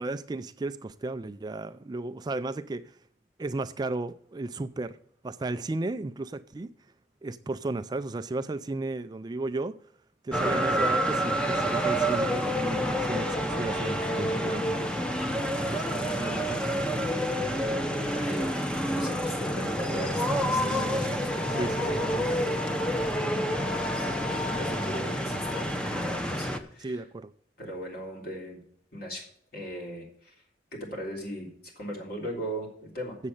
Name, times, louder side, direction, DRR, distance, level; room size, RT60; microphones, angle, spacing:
voice 1, 0.0-2.9 3.4-5.0 5.2-6.7 7.2-9.7 10.2-15.1 15.7-17.3 21.6-21.8 26.8-27.3, right 2 dB, 25° right, 0.3 m, -34 dB
sound 1, 10.3-26.6, equal, 5° left, 0.7 m, -28 dB
voice 2, 15.5-16.1 18.1-22.7 23.5-24.0 24.3-27.0 27.6-28.6 28.9-29.2 29.5-30.3 30.7-33.2, equal, 60° left, 3.5 m, -39 dB
7.6 x 7.4 x 8.3 m
head